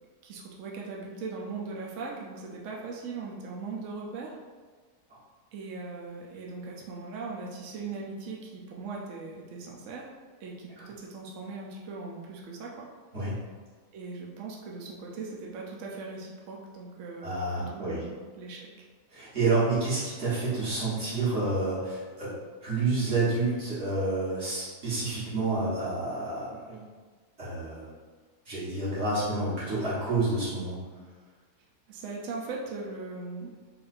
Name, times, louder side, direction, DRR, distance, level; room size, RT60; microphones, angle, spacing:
voice 1, 0.2-4.4 5.5-10.1 10.4-12.9 13.9-17.3 17.6-18.7 31.9-33.5, right 4 dB, 65° right, -2 dB, 0.9 m, -39 dB
voice 2, 17.2-18.0 19.1-22.3 22.6-26.8 27.4-27.9 28.5-30.8, right 3 dB, 45° right, -10 dB, 1.9 m, -29 dB
4.1 x 2.5 x 4.2 m, 1.5 s
omnidirectional pair, 1.7 m